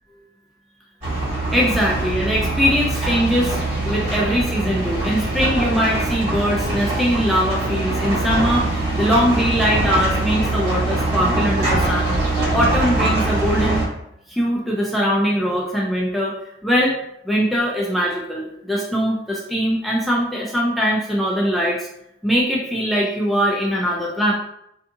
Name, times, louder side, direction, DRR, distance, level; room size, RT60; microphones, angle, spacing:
sound 1, 1.0-13.8, right 2 dB, 40° right, 1.3 m, -22 dB
voice 1, 1.5-3.6 3.9-12.1 12.5-13.9 14.3-16.4 16.6-17.0 17.2-21.9 22.2-24.3, equal, ahead, -4 dB, 0.3 m, -21 dB
2.5 x 2.4 x 2.6 m, 0.78 s
head